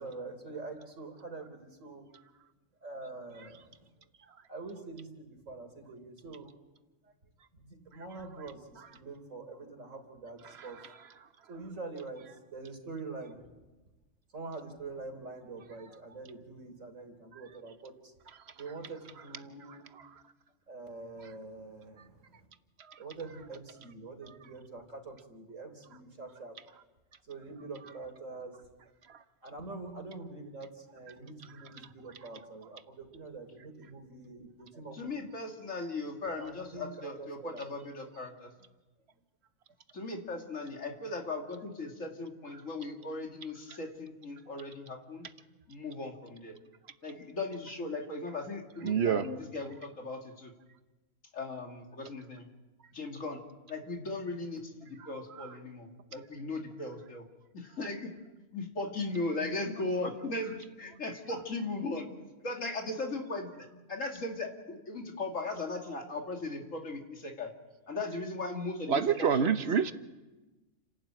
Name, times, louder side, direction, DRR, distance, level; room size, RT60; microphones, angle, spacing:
voice 1, 0.0-2.1 2.8-3.9 4.5-6.5 7.6-10.8 11.5-13.4 14.3-18.1 18.6-19.9 20.7-22.1 23.0-26.5 27.3-28.6 29.4-35.3 36.4-36.9 37.2-37.6, right 3 dB, 85° right, 4 dB, 3.8 m, -45 dB
voice 2, 34.9-38.5 39.9-45.2 45.7-46.6 47.0-50.5 51.3-52.5 52.9-53.4 53.7-57.2 57.5-58.1 58.5-62.1 62.4-67.5 67.9-69.5, left 2 dB, 85° left, 2 dB, 2.9 m, -38 dB
voice 3, 48.8-49.3 55.4-55.5 68.9-69.9, right 7 dB, 60° right, 11 dB, 1.2 m, -27 dB
30.0 x 12.0 x 8.9 m, 1.1 s
omnidirectional pair, 1.3 m